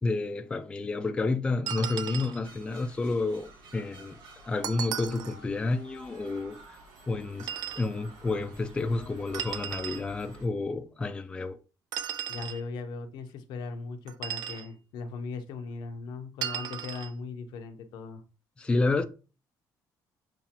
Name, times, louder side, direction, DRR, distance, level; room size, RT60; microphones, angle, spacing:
voice 1, 0.0-4.1 4.4-6.8 7.1-7.5 7.8-11.6 18.6-19.0, left 3 dB, 15° left, 0.3 m, -30 dB
sound 1, 1.7-2.4 4.6-5.4 7.4-7.9 9.3-10.0 11.9-12.6 14.1-14.7 16.4-17.1, right 9 dB, 65° right, 0.4 m, -35 dB
sound 2, 2.4-10.5, right 1 dB, 85° right, 1.4 m, -51 dB
voice 2, 12.3-18.2, left 4 dB, 85° left, 0.7 m, -38 dB
7.0 x 2.5 x 2.8 m
cardioid pair, 155°, 7 cm